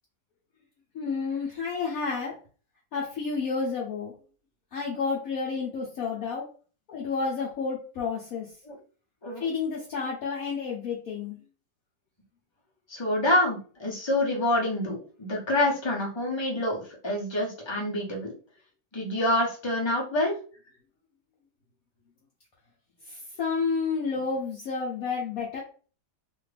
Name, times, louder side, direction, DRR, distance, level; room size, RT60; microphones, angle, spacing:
voice 1, 0.9-2.3 2.9-4.1 4.7-6.4 6.9-8.5 9.4-11.4 23.1-25.6, left 5 dB, 65° left, -4 dB, 1.1 m, -30 dB
voice 2, 12.9-18.3 18.9-20.3, left 1 dB, 25° left, -2 dB, 0.6 m, -27 dB
2.9 x 2.5 x 3.2 m, 0.38 s
omnidirectional pair, 1.8 m